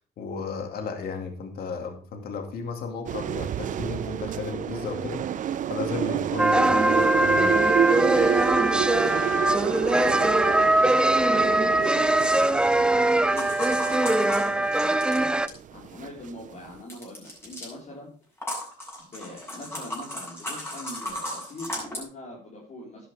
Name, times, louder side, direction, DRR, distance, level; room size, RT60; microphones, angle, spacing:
voice 1, 0.2-7.7, left 4 dB, 65° left, 4 dB, 2.3 m, -34 dB
sound 1, 3.1-16.7, right 9 dB, 50° right, 0.7 m, -29 dB
sound 2, 6.4-15.5, right 1 dB, 5° right, 0.5 m, -22 dB
voice 2, 10.0-10.7 11.2-18.1 19.1-23.1, left 1 dB, 45° left, -5 dB, 4.7 m, -42 dB
sound 3, 13.4-15.6 16.9-17.7 18.4-22.0, left 1 dB, 15° left, 7.3 m, -35 dB
12.0 x 11.0 x 3.5 m, 0.39 s
cardioid pair, 110°, 17 cm